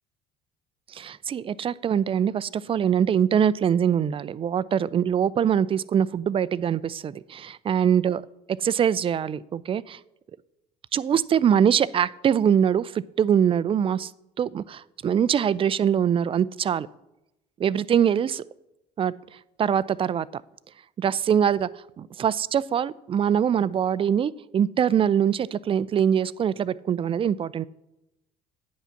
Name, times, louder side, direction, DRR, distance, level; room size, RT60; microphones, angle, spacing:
voice 1, 0.9-8.2 8.6-10.0 10.9-14.1 14.4-16.9 17.6-18.4 19.0-19.1 19.6-20.4 21.0-21.7 22.0-27.6, right 8 dB, 30° right, 19 dB, 0.4 m, -23 dB
9.5 x 5.7 x 5.8 m, 0.90 s
hypercardioid pair, 65°, 20 cm